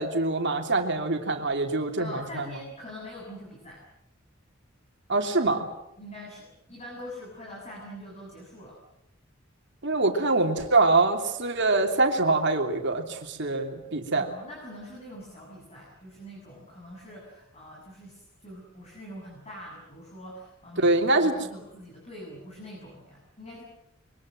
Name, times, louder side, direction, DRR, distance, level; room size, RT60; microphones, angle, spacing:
voice 1, 0.0-2.4 5.1-5.7 9.8-14.3 20.8-21.4, right 2 dB, 60° right, 3 dB, 3.1 m, -24 dB
voice 2, 2.0-3.8 6.0-8.8 14.1-23.6, equal, 30° left, -2 dB, 7.6 m, -44 dB
27.5 x 23.5 x 7.7 m, 0.86 s
head